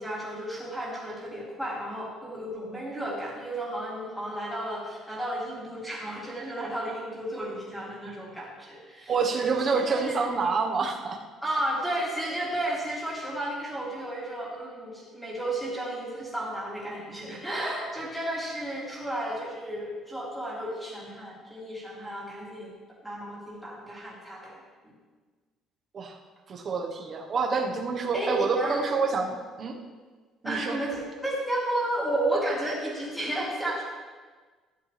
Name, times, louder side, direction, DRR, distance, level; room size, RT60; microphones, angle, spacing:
voice 1, 0.0-10.3 11.4-22.7 23.0-24.5 28.1-28.8 30.4-33.8, right 1 dB, ahead, -6 dB, 3.0 m, -33 dB
voice 2, 9.1-11.2 25.9-26.1 26.5-29.8 30.4-30.8, right 4 dB, 30° right, 2 dB, 1.2 m, -27 dB
13.0 x 10.5 x 3.4 m, 1.4 s
cardioid pair, 175°, 0 cm